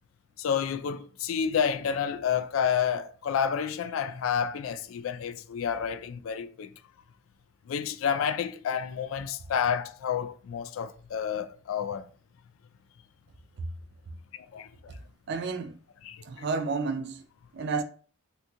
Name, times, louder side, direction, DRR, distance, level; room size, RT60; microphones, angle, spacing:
voice 1, 0.4-6.7 7.7-12.1 14.3-14.9 16.0-16.5, left 7 dB, 80° left, 0.3 m, -30 dB
voice 2, 15.3-15.8 16.3-17.2 17.5-17.8, right 4 dB, 55° right, 0.4 m, -31 dB
2.9 x 2.5 x 3.4 m
head